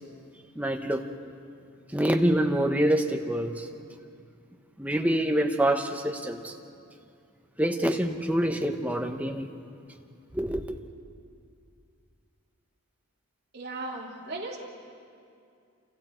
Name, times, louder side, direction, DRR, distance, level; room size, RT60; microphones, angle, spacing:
voice 1, 0.6-1.0 1.9-3.7 4.8-6.5 7.6-9.5 10.3-10.8, right 1 dB, 5° right, 4 dB, 1.0 m, -26 dB
voice 2, 13.5-14.6, right 2 dB, 45° right, -5 dB, 3.1 m, -36 dB
28.5 x 28.0 x 4.5 m, 2.4 s
head